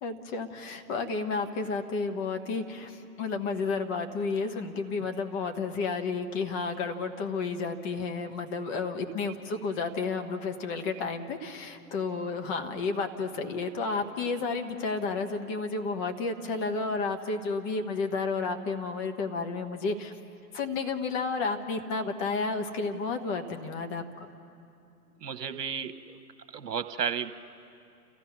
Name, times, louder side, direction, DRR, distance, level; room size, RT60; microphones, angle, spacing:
voice 1, 0.0-20.2 20.5-24.3, left 4 dB, 25° left, 6 dB, 1.3 m, -31 dB
voice 2, 25.2-26.2 26.5-27.3, right 7 dB, 75° right, 10 dB, 1.3 m, -33 dB
30.0 x 15.0 x 6.0 m, 2.6 s
hypercardioid pair, 130°, 48 cm